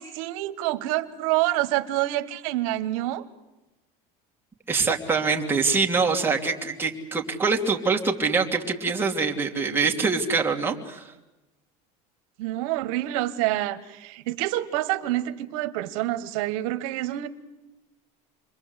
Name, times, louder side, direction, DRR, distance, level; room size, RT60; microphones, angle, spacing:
voice 1, 0.0-3.2 12.4-17.3, right 15 dB, 80° right, 9 dB, 1.3 m, -27 dB
voice 2, 4.7-11.1, right 4 dB, 10° right, 1 dB, 2.8 m, -24 dB
28.5 x 22.5 x 8.2 m, 1.0 s
cardioid pair, 135°, 18 cm